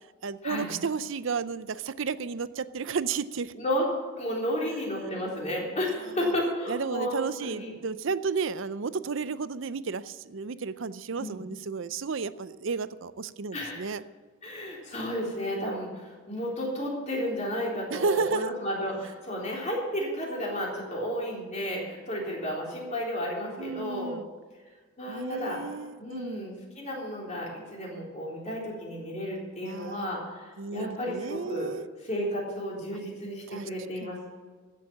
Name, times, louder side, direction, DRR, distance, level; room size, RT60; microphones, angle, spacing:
voice 1, 0.2-3.5 6.7-14.0 17.9-18.5 23.6-24.3 25.1-26.5 29.6-30.1 30.6-31.8 33.5-33.7 34.0-34.1, right 5 dB, 60° right, 15 dB, 0.5 m, -32 dB
voice 2, 3.5-3.9 4.1-7.7 11.2-11.4 13.5-13.9 14.4-24.2 25.0-25.6 26.0-31.8 32.0-34.3, equal, 30° left, -3 dB, 3.7 m, -32 dB
15.0 x 7.5 x 7.4 m, 1.4 s
head